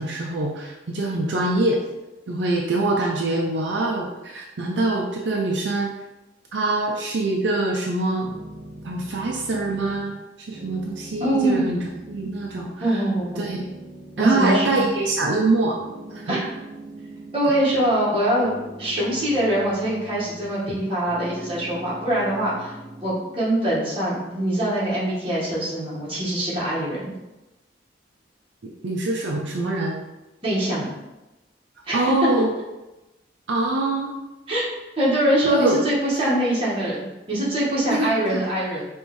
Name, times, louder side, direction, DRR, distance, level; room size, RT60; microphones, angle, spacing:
voice 1, 0.0-1.8 2.3-5.9 6.5-8.3 8.8-13.0 13.4-13.7 14.2-15.8 16.1-16.4 28.6-29.9 31.9-32.5 33.5-34.1 35.4-35.8 36.2-36.3 37.9-38.4, right 2 dB, 70° right, -1 dB, 0.5 m, -24 dB
sound 1, 8.2-10.2 10.5-12.9 13.1-15.5 15.8-18.1 18.4-20.8 21.1-23.4, right 1 dB, 45° right, 0.8 m, -42 dB
voice 2, 11.2-11.7 12.8-13.5 14.2-14.8 16.3-16.5 17.3-18.5 18.8-22.8 23.0-27.1 30.4-30.9 31.9-32.1 34.5-34.7 35.0-38.8, right 1 dB, 30° right, -7 dB, 1.5 m, -23 dB
5.3 x 3.1 x 3.1 m, 1.0 s
head